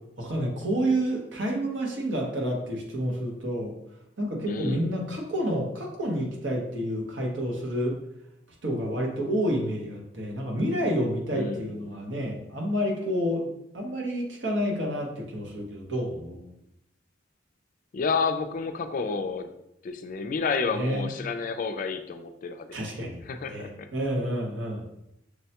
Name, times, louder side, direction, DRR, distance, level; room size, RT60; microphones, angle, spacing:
voice 1, 0.2-3.7 4.2-7.9 8.6-16.5 20.7-21.1 22.7-24.9, equal, 80° right, 0 dB, 0.9 m, -29 dB
voice 2, 4.5-4.9 11.3-11.8 17.9-19.5 19.8-22.7 23.3-23.9, left 4 dB, 45° left, 8 dB, 0.3 m, -30 dB
6.1 x 2.2 x 2.8 m, 0.83 s
head